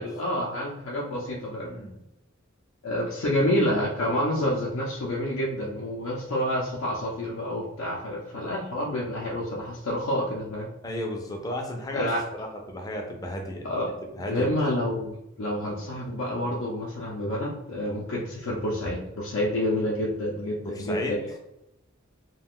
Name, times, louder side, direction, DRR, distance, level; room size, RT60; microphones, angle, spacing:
voice 1, 0.0-1.7 2.8-10.7 11.9-12.2 13.6-13.9 14.3-21.2, left 1 dB, 80° left, -3 dB, 0.5 m, -28 dB
voice 2, 1.6-2.0 10.8-13.6 14.1-14.6 20.6-21.2, left 1 dB, 20° left, 2 dB, 0.4 m, -33 dB
2.3 x 2.2 x 3.5 m, 0.84 s
head